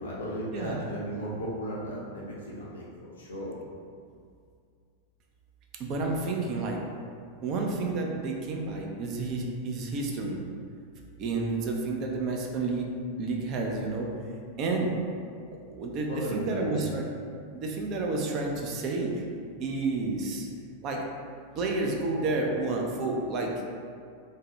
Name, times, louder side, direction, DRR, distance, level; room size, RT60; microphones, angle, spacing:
voice 1, 0.0-3.5 16.1-16.9, equal, 70° left, -5 dB, 0.6 m, -35 dB
voice 2, 5.8-6.8 7.4-10.4 11.2-12.9 13.2-14.1 14.6-14.9 15.5-17.0 17.5-19.2 19.6-20.5 20.8-21.0 21.6-23.5, right 3 dB, 35° right, 0 dB, 0.4 m, -30 dB
2.6 x 2.1 x 3.0 m, 2.3 s
figure-of-eight pair, 90°, 0 cm